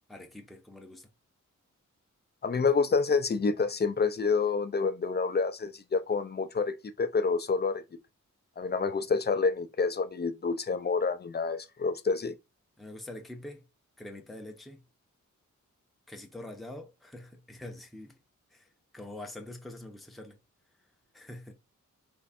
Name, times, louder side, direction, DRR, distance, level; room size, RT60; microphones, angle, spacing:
voice 1, 0.1-1.1 12.8-13.7 14.0-14.8 16.1-18.2 18.5-18.7 18.9-20.4 21.1-21.5, left 1 dB, ahead, 0.8 m, -44 dB
voice 2, 2.4-7.8 8.6-12.3, left 4 dB, 30° left, 0.6 m, -28 dB
3.6 x 3.1 x 4.3 m
cardioid pair, 75°, 32 cm